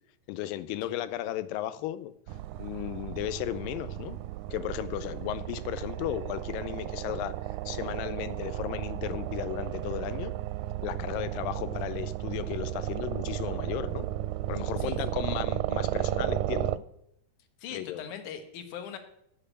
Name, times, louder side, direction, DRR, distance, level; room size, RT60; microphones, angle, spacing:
voice 1, 0.3-2.1 2.6-4.2 4.5-7.3 7.7-10.3 10.8-14.1 14.5-16.8 17.7-18.1, left 13 dB, 85° left, 14 dB, 2.4 m, -35 dB
sound 1, 2.3-16.8, right 14 dB, 80° right, 1.9 m, -34 dB
voice 2, 17.6-19.0, left 8 dB, 65° left, 8 dB, 2.5 m, -40 dB
10.5 x 6.8 x 8.6 m, 0.76 s
omnidirectional pair, 3.9 m